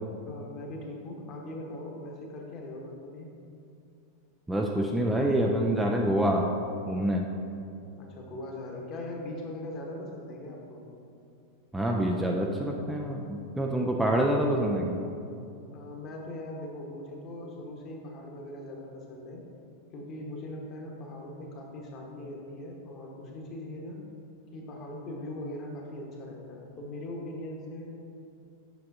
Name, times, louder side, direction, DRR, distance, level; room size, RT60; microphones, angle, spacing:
voice 1, 0.2-3.3 8.0-10.9 15.7-19.4 19.9-24.0 24.5-27.9, left 1 dB, 35° left, 0 dB, 1.2 m, -40 dB
voice 2, 4.5-6.6 6.9-7.3 11.7-15.0, right 1 dB, 5° right, 1 dB, 0.4 m, -26 dB
8.1 x 6.1 x 2.7 m, 2.6 s
figure-of-eight pair, 90°, 0 cm